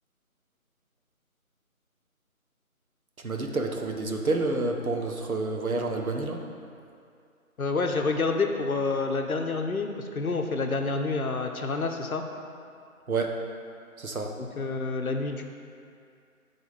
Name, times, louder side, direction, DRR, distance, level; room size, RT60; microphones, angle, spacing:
voice 1, 3.2-6.4 13.1-13.3 14.0-14.3, right 3 dB, 75° right, 2 dB, 0.9 m, -29 dB
voice 2, 7.6-12.2 14.4-15.4, left 3 dB, 75° left, 4 dB, 0.7 m, -28 dB
8.3 x 3.4 x 4.1 m, 2.4 s
figure-of-eight pair, 165°, 43 cm